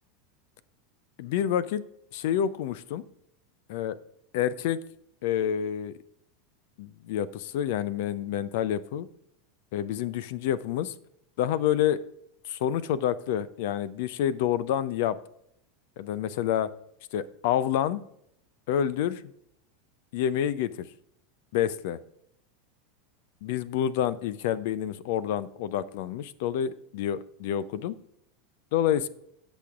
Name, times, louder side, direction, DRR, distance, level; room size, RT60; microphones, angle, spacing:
voice 1, 1.2-1.8 2.1-3.1 3.7-4.0 4.3-4.8 5.2-5.9 6.8-9.1 9.7-10.9 11.4-12.0 12.4-15.2 16.0-16.7 17.1-18.0 18.7-19.2 20.1-20.9 21.5-22.0 23.4-27.9 28.7-29.1, left 10 dB, 60° left, 18 dB, 0.5 m, -28 dB
18.0 x 6.1 x 2.4 m, 0.74 s
hypercardioid pair, 85°, 0 cm